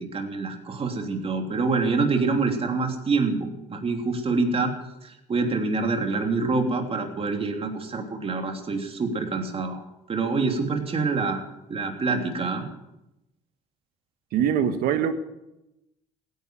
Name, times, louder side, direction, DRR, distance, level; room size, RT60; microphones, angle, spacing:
voice 1, 0.0-4.7 5.0-9.8 10.1-11.4 11.7-12.7, right 4 dB, 40° right, 4 dB, 3.3 m, -26 dB
voice 2, 14.3-15.1, right 9 dB, 75° right, 10 dB, 1.6 m, -23 dB
16.0 x 10.5 x 7.8 m, 0.91 s
supercardioid pair, 75°, 16 cm